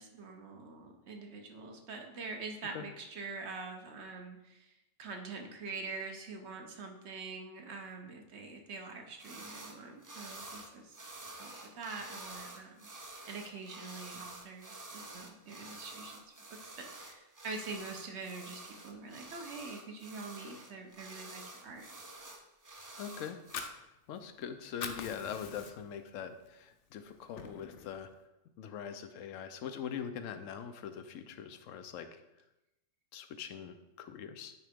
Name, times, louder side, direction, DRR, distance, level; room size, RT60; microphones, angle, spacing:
voice 1, 0.0-11.0 11.4-12.9 13.3-21.9, right 4 dB, 65° right, 3 dB, 1.0 m, -45 dB
sound 1, 9.2-9.8 10.0-23.7, right 2 dB, 30° right, 0.3 m, -49 dB
voice 2, 23.0-23.4 24.1-28.1 28.6-32.2 33.1-34.5, left 8 dB, 90° left, 9 dB, 1.0 m, -42 dB
Fire, 23.3-24.4 24.7-26.0 26.4-26.6 27.0-28.0, left 6 dB, 60° left, 0.7 m, -43 dB
9.3 x 3.7 x 3.5 m, 0.95 s
omnidirectional pair, 1.3 m